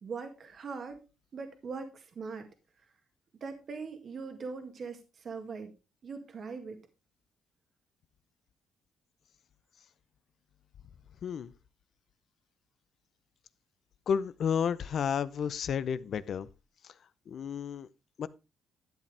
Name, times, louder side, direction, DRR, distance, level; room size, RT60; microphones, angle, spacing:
voice 1, 0.0-1.0 1.3-2.5 3.4-5.7 6.0-6.8, right 4 dB, 50° right, 1.9 m, -41 dB
voice 2, 11.2-11.5 14.1-16.5 17.3-17.9 18.2-18.3, left 7 dB, 60° left, 0.7 m, -31 dB
11.5 x 8.4 x 3.4 m
cardioid pair, 90°, 0 cm